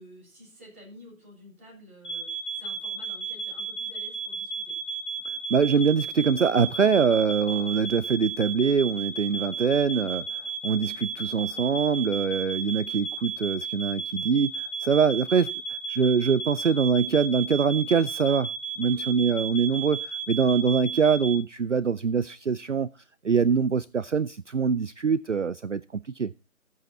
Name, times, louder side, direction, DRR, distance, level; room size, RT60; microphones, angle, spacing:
voice 1, 0.0-4.8 18.8-19.1 20.6-20.7, equal, 10° right, 3.6 m, -50 dB
sound 1, 2.0-21.4, right 4 dB, 55° left, 2.0 m, -34 dB
voice 2, 5.5-10.2 10.6-18.5 18.8-22.9 23.2-26.3, right 6 dB, 60° right, 0.5 m, -24 dB
13.5 x 8.2 x 4.3 m
figure-of-eight pair, 180°, 42 cm